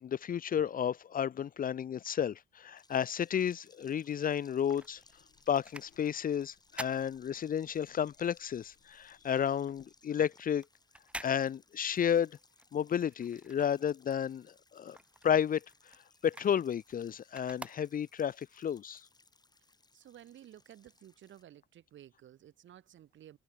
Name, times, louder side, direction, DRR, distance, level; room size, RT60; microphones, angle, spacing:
voice 1, 0.0-5.0 5.5-10.6 11.2-12.4 12.7-15.0 15.2-15.6 16.2-19.0, left 8 dB, 45° left, 0.6 m, -32 dB
sound 1, 2.8-21.4, left 3 dB, 20° left, 6.5 m, -66 dB
sound 2, 4.3-8.0 8.3-14.3 14.6-18.4 18.9-19.0, right 1 dB, 5° right, 1.9 m, -50 dB
sound 3, 4.7-10.0, left 10 dB, 65° left, 6.7 m, -68 dB
voice 2, 19.9-23.4, right 11 dB, 70° right, 3.5 m, -54 dB
cardioid pair, 90°, 20 cm